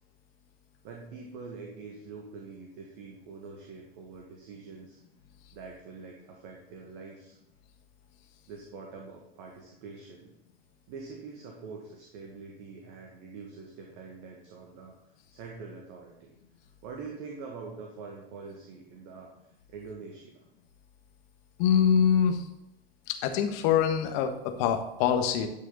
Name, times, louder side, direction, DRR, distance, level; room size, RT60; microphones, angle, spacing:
voice 1, 0.8-5.0 5.5-7.4 8.5-10.3 10.9-15.0 15.3-16.3 16.8-19.3 19.7-20.4, right 4 dB, 55° right, 0 dB, 1.9 m, -44 dB
voice 2, 21.6-22.4 23.2-25.5, left 8 dB, 50° left, 6 dB, 1.5 m, -24 dB
11.5 x 5.6 x 4.0 m, 0.87 s
hypercardioid pair, 90°, 30 cm